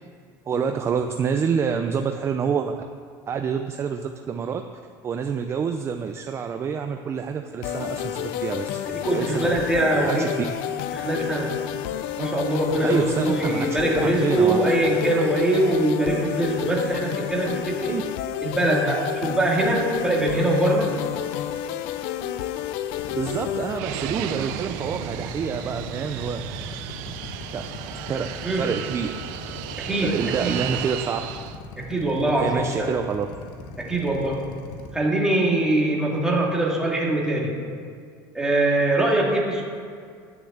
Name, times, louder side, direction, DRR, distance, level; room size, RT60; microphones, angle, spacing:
voice 1, 0.5-2.8 3.3-4.6 5.0-8.7 9.1-10.3 12.8-14.6 17.9-18.0 23.1-26.4 27.5-27.6 28.1-28.3 28.5-29.1 30.0-31.2 32.3-33.3, right 6 dB, 30° right, 6 dB, 0.5 m, -27 dB
sound 1, 7.6-23.8, left 11 dB, 80° left, 0.5 m, -30 dB
voice 2, 8.9-10.3 10.9-11.6 12.2-17.9 18.4-20.9 28.4-28.7 29.8-30.6 31.8-32.9 33.8-34.6 34.9-37.6 38.3-39.6, right 1 dB, 5° right, -3 dB, 2.2 m, -23 dB
Drill, 22.9-34.9, left 4 dB, 60° left, 1.4 m, -39 dB
Fixed-wing aircraft airplane, 23.8-31.6, right 11 dB, 85° right, 0.7 m, -34 dB
10.0 x 6.9 x 8.6 m, 2.2 s
cardioid pair, 135°, 9 cm